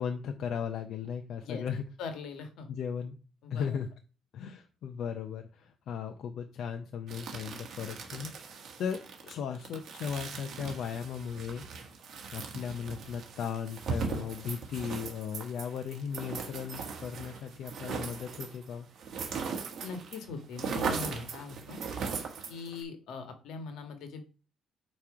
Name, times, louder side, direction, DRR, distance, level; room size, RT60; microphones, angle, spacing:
voice 1, 0.0-1.8 2.7-3.2 3.5-3.9 4.3-11.6 12.3-18.9, left 7 dB, 60° left, 6 dB, 0.6 m, -37 dB
voice 2, 2.0-2.7 3.4-3.7 19.8-21.8 22.5-24.2, left 4 dB, 80° left, 7 dB, 1.4 m, -41 dB
sound 1, 7.1-20.2 20.4-22.8, right 5 dB, 50° right, 1.4 m, -39 dB
8.7 x 3.1 x 4.9 m, 0.36 s
cardioid pair, 160°, 0 cm